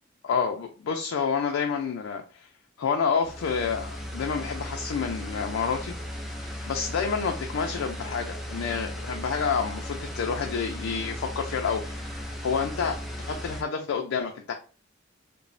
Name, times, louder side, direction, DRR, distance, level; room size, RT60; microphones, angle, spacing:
voice 1, 0.2-2.5 2.8-5.9 6.7-14.5, left 6 dB, 80° left, 2 dB, 0.4 m, -29 dB
sound 1, 3.2-13.6, equal, ahead, 0.4 m, -36 dB
2.9 x 2.0 x 2.5 m, 0.36 s
head